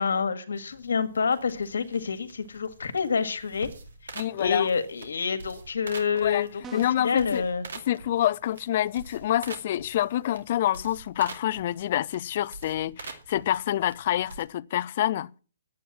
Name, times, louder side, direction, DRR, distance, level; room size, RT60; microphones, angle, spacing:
voice 1, 0.0-3.7 4.4-7.7, left 5 dB, 80° left, 1.7 m, -28 dB
sound 1, 0.5-14.4, right 3 dB, 80° right, 2.5 m, -46 dB
voice 2, 4.2-4.7 6.2-6.5 6.7-7.4 7.9-15.3, left 12 dB, 45° left, 0.5 m, -27 dB
sound 2, 6.6-7.2, right 4 dB, 20° right, 0.6 m, -44 dB
10.0 x 8.6 x 7.3 m
hypercardioid pair, 145°, 0 cm